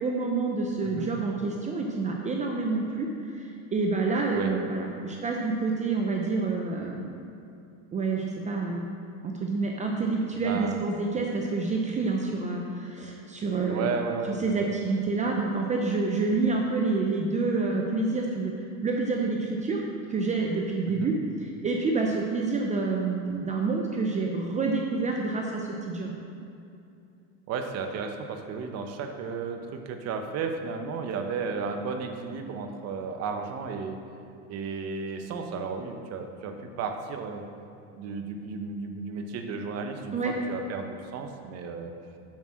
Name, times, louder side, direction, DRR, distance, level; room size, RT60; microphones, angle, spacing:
voice 1, 0.0-7.1 7.9-8.9 9.2-13.9 14.4-18.5 18.8-19.8 20.1-21.1 21.4-26.1 40.1-40.3, right 3 dB, 20° right, 0 dB, 0.6 m, -28 dB
voice 2, 10.3-10.8 13.7-14.7 20.9-21.1 27.5-34.0 34.5-37.5 37.9-41.9, right 5 dB, 40° right, 5 dB, 0.9 m, -34 dB
7.4 x 6.0 x 6.2 m, 2.6 s
supercardioid pair, 130°, 39 cm